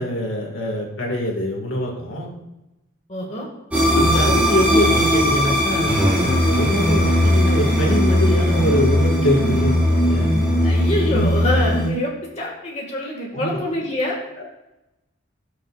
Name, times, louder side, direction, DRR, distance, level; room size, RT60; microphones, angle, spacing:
voice 1, 0.0-2.3 3.9-10.3 13.3-13.6 14.4-14.5, left 1 dB, 75° left, 0 dB, 2.2 m, -24 dB
voice 2, 3.1-3.5 10.6-14.2, left 1 dB, 35° left, -3 dB, 1.9 m, -25 dB
sound 1, 3.7-11.9, equal, 5° right, 2.9 m, -18 dB
17.5 x 6.6 x 2.5 m, 0.97 s
head